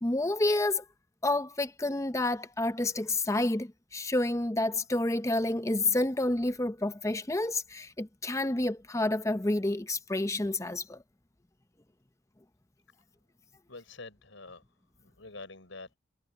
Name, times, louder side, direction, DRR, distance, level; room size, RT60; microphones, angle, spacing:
voice 1, 0.0-0.8 1.2-11.0, left 2 dB, 15° left, 0.7 m, -29 dB
voice 2, 13.7-14.6 15.0-16.0, left 3 dB, 75° left, 5.0 m, -46 dB
head